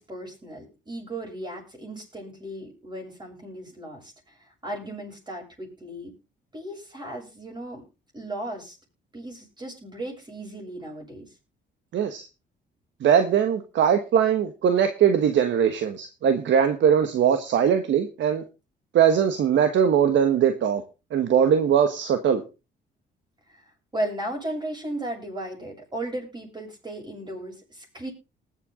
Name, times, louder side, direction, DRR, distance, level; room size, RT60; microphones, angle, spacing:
voice 1, 0.0-4.4 4.6-6.1 6.5-7.8 8.1-8.8 9.1-11.3 23.5-23.6 23.9-28.1, right 1 dB, 20° right, -1 dB, 7.5 m, -35 dB
voice 2, 11.9-12.2 13.0-18.4 18.9-20.8 21.1-22.4, right 8 dB, 70° right, 8 dB, 1.3 m, -21 dB
19.5 x 8.2 x 3.8 m, 0.30 s
cardioid pair, 90°, 20 cm